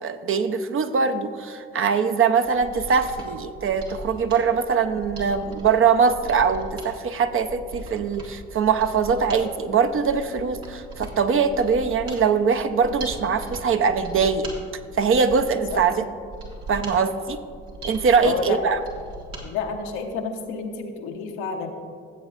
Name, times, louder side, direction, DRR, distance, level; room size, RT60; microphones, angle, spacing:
voice 1, 0.0-14.5 15.0-16.0 16.7-17.4 17.8-18.8, right 6 dB, 45° right, 7 dB, 0.7 m, -22 dB
Mechanisms, 2.4-19.5 19.8-19.9, right 2 dB, 80° right, 1.8 m, -39 dB
voice 2, 18.2-18.6 19.4-21.7, left 5 dB, 80° left, 3 dB, 1.0 m, -29 dB
14.5 x 8.0 x 2.5 m, 2.3 s
hypercardioid pair, 50°, 30 cm